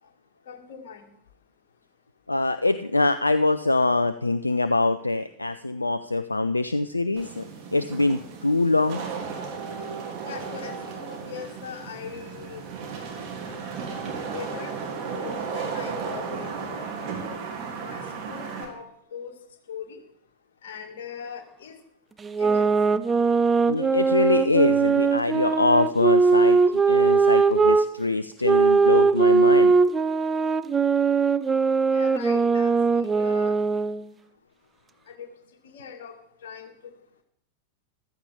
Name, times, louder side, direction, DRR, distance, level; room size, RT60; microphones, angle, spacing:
voice 1, 0.5-1.1 10.2-12.6 12.9-13.2 13.4-13.8 14.3-14.7 15.1-17.4 17.8-18.0 18.3-19.3 19.7-20.0 20.6-21.8 22.4-22.8 31.9-33.6 35.1-35.3 35.6-36.1 36.4-36.9, left 7 dB, 55° left, 3 dB, 2.1 m, -40 dB
voice 2, 2.3-7.4 7.7-9.0 23.7-29.7, left 2 dB, 80° left, 12 dB, 0.4 m, -24 dB
Wind / Rain, 7.2-18.6, right 5 dB, 40° right, 3.2 m, -35 dB
sound 1, 22.2-27.9 28.4-34.0, right 4 dB, 15° right, 0.6 m, -20 dB
14.5 x 13.0 x 3.7 m, 0.70 s
figure-of-eight pair, 90°, 0 cm